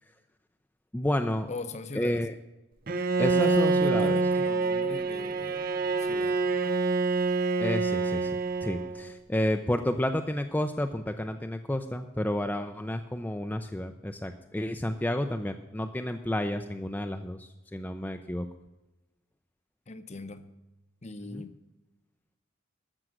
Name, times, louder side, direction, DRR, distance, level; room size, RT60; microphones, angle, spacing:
voice 1, 0.9-1.5 1.9-2.3 3.2-4.2 7.6-8.3 8.6-18.5 21.3-21.4, left 1 dB, 10° left, 5 dB, 0.4 m, -30 dB
voice 2, 1.5-2.2 3.3-5.7 6.0-6.5 19.9-20.5 21.0-21.6, left 3 dB, 35° left, 11 dB, 0.8 m, -40 dB
Bowed string instrument, 2.9-9.1, right 3 dB, 45° right, 0.6 m, -26 dB
14.0 x 6.2 x 7.7 m, 1.0 s
head